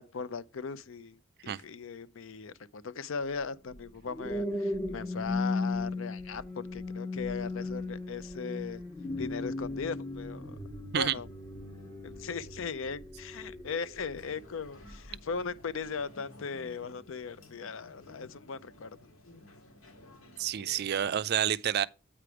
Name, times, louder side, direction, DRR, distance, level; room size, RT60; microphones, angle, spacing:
voice 1, 0.0-8.8 9.2-10.6 10.9-11.3 12.0-19.0, left 5 dB, 65° left, 0.5 m, -38 dB
sound 1, 3.8-14.3 14.9-15.2, left 2 dB, 25° left, 1.4 m, -37 dB
sound 2, 14.1-21.2, left 2 dB, 90° left, 2.1 m, -54 dB
voice 2, 20.4-21.9, right 10 dB, 50° right, 0.4 m, -29 dB
8.7 x 5.1 x 4.7 m
head